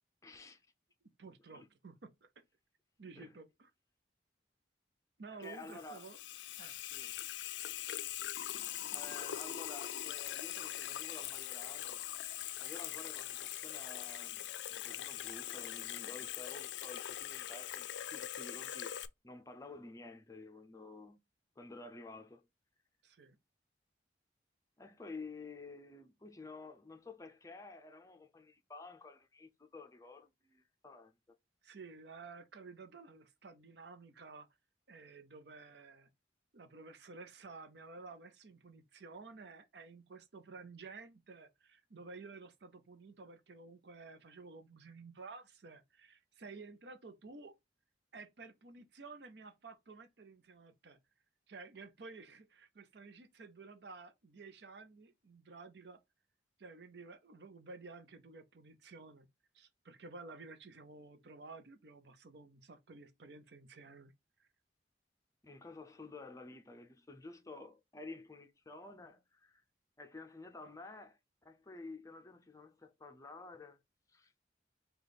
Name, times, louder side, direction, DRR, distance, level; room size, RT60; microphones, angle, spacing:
voice 1, 0.2-0.7 1.5-1.7 3.2-3.3 5.3-6.0 6.9-7.1 8.9-12.0 12.4-18.9 19.2-21.2 21.6-22.4 24.8-31.1 65.4-69.6 70.0-73.8 74.1-74.3, left 3 dB, 20° left, 0.5 m, -51 dB
voice 2, 1.2-2.3 3.0-3.7 5.2-6.2 6.6-6.8 23.0-23.4 31.6-34.5 34.9-36.1 36.5-47.6 48.1-51.0 51.5-56.0 56.6-59.3 59.5-64.1 64.4-64.5, right 4 dB, 70° right, 0.6 m, -52 dB
Water tap faucet / Sink (filling or washing), 5.4-19.1, left 12 dB, 80° left, 0.4 m, -42 dB
5.0 x 2.3 x 4.0 m
head